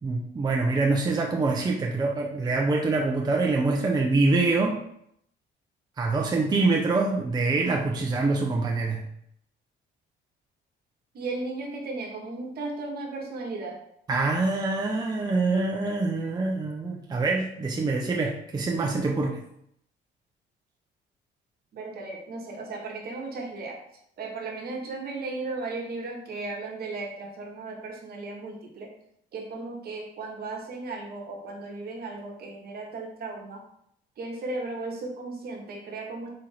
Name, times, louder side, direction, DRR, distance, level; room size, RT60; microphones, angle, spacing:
voice 1, 0.0-4.8 6.0-9.0 14.1-19.4, right 3 dB, 20° right, 1 dB, 0.5 m, -25 dB
voice 2, 11.1-13.8 21.7-23.8 24.2-28.9 29.3-33.6 34.2-36.3, right 3 dB, 55° right, 0 dB, 1.1 m, -35 dB
4.3 x 2.5 x 4.0 m, 0.72 s
cardioid pair, 95°, 19 cm